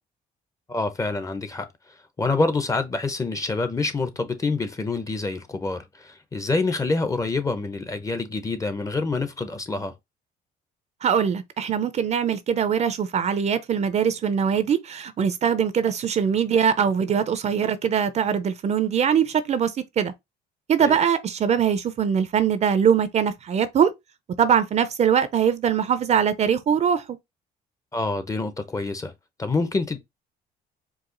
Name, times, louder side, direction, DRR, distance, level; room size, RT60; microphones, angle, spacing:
voice 1, 0.7-1.7 2.2-9.9 20.8-21.0 27.9-29.1 29.4-30.0, left 3 dB, 20° left, 0.7 m, -26 dB
voice 2, 11.0-20.1 20.7-23.9 24.4-27.2, right 7 dB, 40° right, 0.6 m, -22 dB
4.8 x 2.4 x 3.8 m
cardioid pair, 110°, 17 cm